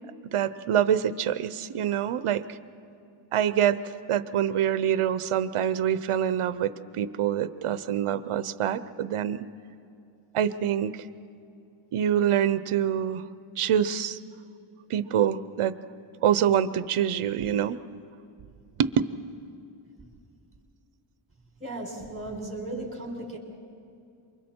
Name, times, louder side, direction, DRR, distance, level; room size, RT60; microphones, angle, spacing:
voice 1, 0.3-2.4 3.3-3.8 4.1-9.5 10.3-10.9 11.9-13.2 13.6-14.2 14.9-15.8 16.2-17.8 18.8-18.9, right 9 dB, 85° right, 14 dB, 0.8 m, -25 dB
voice 2, 21.6-23.4, right 2 dB, 25° right, -1 dB, 5.7 m, -36 dB
27.5 x 24.5 x 4.5 m, 2.6 s
wide cardioid pair, 90°, 50 cm